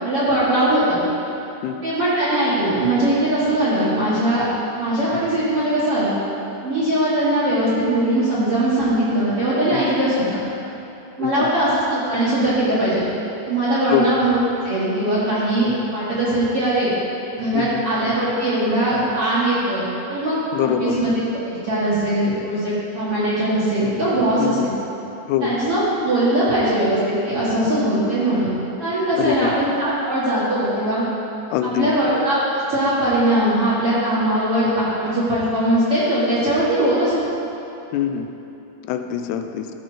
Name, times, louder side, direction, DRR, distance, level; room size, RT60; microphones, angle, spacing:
voice 1, 0.0-1.0 1.8-4.5 4.8-6.2 6.6-10.4 11.2-13.0 13.5-14.4 14.6-16.9 17.3-21.1 21.5-24.5 25.4-28.5 28.8-31.0 31.8-37.1, right 1 dB, 45° right, -11 dB, 2.2 m, -20 dB
voice 2, 20.5-21.0 24.4-24.7 25.3-25.6 29.2-29.5 31.5-32.0 37.9-38.3 38.9-39.7, left 9 dB, 85° left, 7 dB, 2.7 m, -23 dB
14.0 x 5.6 x 5.0 m, 2.9 s
omnidirectional pair, 4.6 m